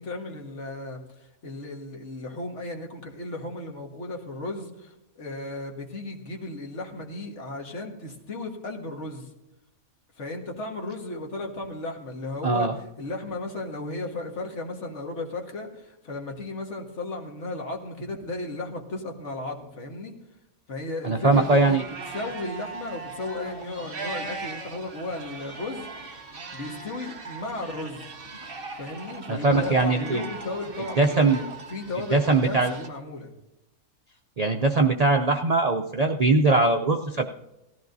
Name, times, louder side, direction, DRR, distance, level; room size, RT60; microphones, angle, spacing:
voice 1, 0.0-9.3 10.2-12.7 13.0-20.1 20.7-28.1 28.8-33.3, left 2 dB, 55° left, 1 dB, 1.8 m, -35 dB
voice 2, 12.4-12.7 21.0-21.8 29.3-30.3 31.0-31.5 32.1-32.7 34.4-37.3, right 3 dB, 85° right, 4 dB, 0.3 m, -21 dB
sound 1, 21.3-32.9, right 3 dB, 45° right, 1.3 m, -39 dB
18.0 x 14.0 x 2.7 m, 0.93 s
omnidirectional pair, 1.5 m